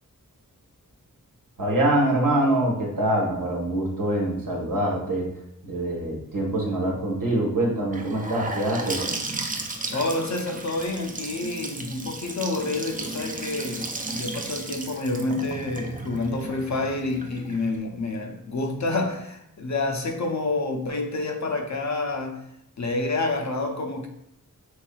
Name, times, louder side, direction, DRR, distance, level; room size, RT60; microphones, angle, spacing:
voice 1, 1.6-5.3 5.6-9.0, right 1 dB, 75° right, -3 dB, 1.2 m, -24 dB
Gurgling / Sink (filling or washing) / Bathtub (filling or washing), 7.9-17.8, right 2 dB, 25° right, 0.5 m, -34 dB
voice 2, 9.9-22.4 22.8-24.1, left 2 dB, 55° left, 4 dB, 0.6 m, -28 dB
4.6 x 3.1 x 2.3 m, 0.79 s
wide cardioid pair, 60°, 34 cm